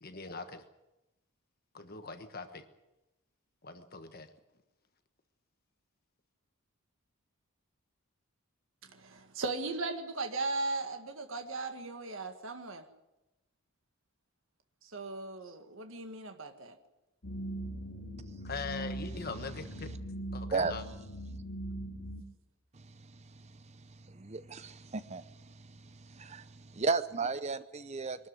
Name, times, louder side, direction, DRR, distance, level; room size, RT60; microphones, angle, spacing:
voice 1, 0.0-0.6 1.7-2.6 3.6-4.3 18.4-19.9 20.3-20.8, left 4 dB, 45° left, 8 dB, 1.3 m, -41 dB
voice 2, 8.9-12.8 14.8-16.7 21.7-21.9, right 3 dB, 60° right, 6 dB, 1.8 m, -37 dB
sound 1, 17.2-22.2, right 1 dB, 60° left, 2.2 m, -41 dB
voice 3, 24.2-25.2 26.1-26.4 26.7-27.6 27.9-28.2, right 4 dB, 30° right, 13 dB, 0.6 m, -33 dB
23.0 x 13.0 x 9.5 m, 0.98 s
head